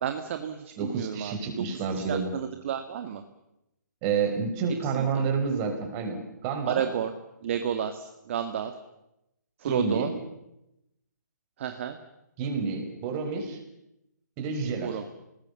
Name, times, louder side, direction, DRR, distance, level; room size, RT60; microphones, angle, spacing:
voice 1, 0.0-1.6 1.9-3.2 4.8-5.3 6.6-7.1 7.4-8.7 9.6-10.1 11.6-12.0 14.8-15.0, right 9 dB, 40° right, 8 dB, 1.8 m, -31 dB
voice 2, 0.8-2.3 4.0-6.8 9.6-10.1 12.4-13.6 14.4-15.0, right 5 dB, 25° right, 4 dB, 5.6 m, -29 dB
29.0 x 20.0 x 7.1 m, 0.88 s
figure-of-eight pair, 145°, 10 cm